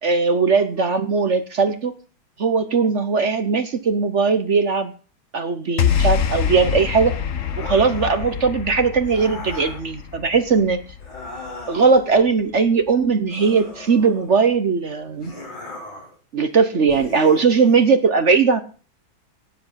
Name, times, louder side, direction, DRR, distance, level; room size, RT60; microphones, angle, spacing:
voice 1, 0.0-1.9 2.4-4.9 5.3-7.1 7.6-10.8 11.7-15.3 16.3-18.6, right 5 dB, 45° right, 10 dB, 1.0 m, -19 dB
sound 1, 5.8-12.2, left 8 dB, 50° left, 1.2 m, -25 dB
sound 2, 7.4-8.3 9.1-9.8 11.0-12.0 13.3-14.4 15.2-16.1 16.9-17.9, left 2 dB, 80° left, 6.5 m, -37 dB
18.0 x 7.6 x 5.8 m, 0.38 s
omnidirectional pair, 2.1 m